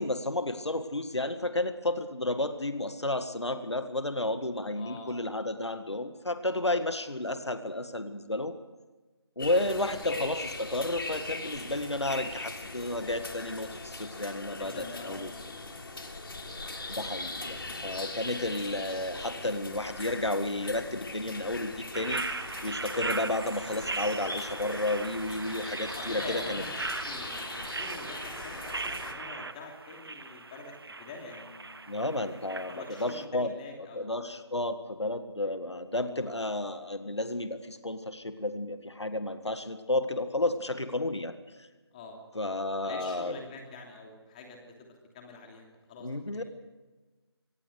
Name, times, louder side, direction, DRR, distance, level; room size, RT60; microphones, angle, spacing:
voice 1, 0.0-8.5 9.4-15.3 16.9-22.3 22.6-26.6 31.9-41.4 42.3-43.4 46.0-46.4, left 2 dB, 85° left, 9 dB, 1.8 m, -32 dB
voice 2, 4.8-5.4 14.6-15.6 17.4-17.5 25.9-32.0 32.3-34.1 36.1-36.3 41.9-42.2 42.8-46.4, left 3 dB, 15° left, 2 dB, 2.9 m, -46 dB
sound 1, 9.4-29.1, left 2 dB, 55° left, 3.4 m, -40 dB
sound 2, 21.9-33.2, right 3 dB, 60° right, 1.1 m, -38 dB
25.0 x 19.5 x 6.6 m, 1.2 s
figure-of-eight pair, 160°, 14 cm